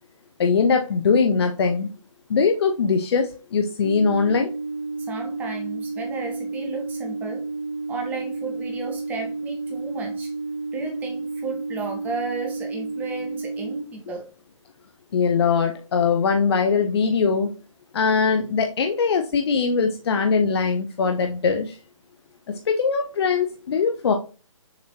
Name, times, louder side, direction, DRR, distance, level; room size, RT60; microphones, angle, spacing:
voice 1, 0.4-1.9 2.3-4.5 15.1-17.5 17.9-21.8 22.5-24.1, left 5 dB, 50° left, 4 dB, 0.5 m, -21 dB
sound 1, 3.8-13.8, right 3 dB, 35° right, 1.6 m, -31 dB
voice 2, 5.1-7.4 7.9-10.3 10.7-14.3, right 4 dB, 10° right, 2 dB, 0.8 m, -34 dB
6.6 x 3.0 x 2.6 m, 0.35 s
figure-of-eight pair, 140°, 17 cm